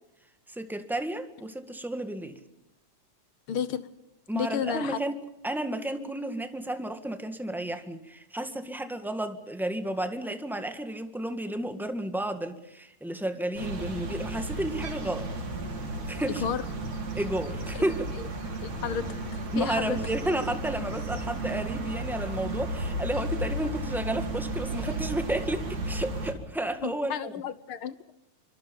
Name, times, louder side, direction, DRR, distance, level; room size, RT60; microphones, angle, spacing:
voice 1, 0.5-2.4 4.3-15.3 16.1-16.4 17.1-18.1 19.5-27.4, right 1 dB, ahead, 0.7 m, -32 dB
voice 2, 3.5-3.9 4.3-5.0 16.2-16.6 17.7-17.8 18.6-19.2 19.6-20.0 26.8-28.1, left 8 dB, 60° left, 1.5 m, -32 dB
sound 1, 13.6-26.3, right 1 dB, 85° right, 5.7 m, -34 dB
27.0 x 25.0 x 5.4 m
omnidirectional pair, 3.4 m